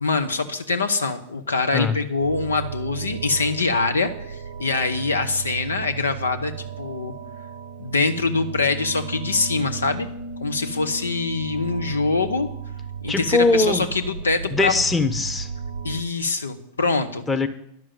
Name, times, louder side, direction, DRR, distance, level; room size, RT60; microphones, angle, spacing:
voice 1, 0.0-7.1 7.8-10.1 10.4-12.5 13.0-14.8 15.8-17.2, left 3 dB, 75° left, 6 dB, 0.9 m, -24 dB
sound 1, 2.2-16.0, right 6 dB, 70° right, 0.8 m, -35 dB
voice 2, 13.1-13.9 14.5-15.5 17.3-17.5, left 3 dB, 10° left, 7 dB, 1.0 m, -21 dB
10.5 x 6.2 x 9.0 m, 0.72 s
figure-of-eight pair, 90°, 0 cm